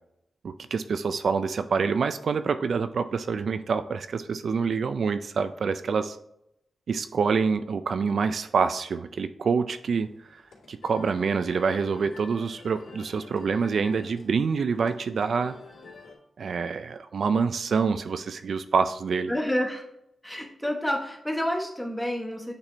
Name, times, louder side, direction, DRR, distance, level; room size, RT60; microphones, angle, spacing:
voice 1, 0.4-6.2 6.9-10.4 10.7-15.6 16.4-19.3, right 5 dB, 65° right, 11 dB, 0.3 m, -26 dB
sound 1, 10.0-16.1, left 4 dB, 80° left, 2.4 m, -48 dB
voice 2, 19.3-19.8 20.2-22.5, equal, 5° left, 1 dB, 1.2 m, -29 dB
8.9 x 4.1 x 3.3 m, 0.80 s
wide cardioid pair, 110°, 0 cm